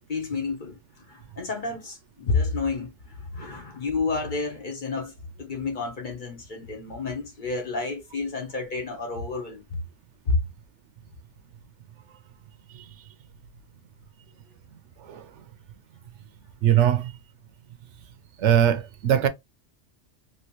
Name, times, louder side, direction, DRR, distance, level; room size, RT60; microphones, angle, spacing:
voice 1, 0.1-5.1 5.4-9.8 10.3-10.5, left 3 dB, 45° left, 1.0 m, -30 dB
voice 2, 16.6-17.1 18.4-19.3, right 10 dB, 75° right, 0.9 m, -21 dB
3.0 x 3.0 x 2.9 m
omnidirectional pair, 1.3 m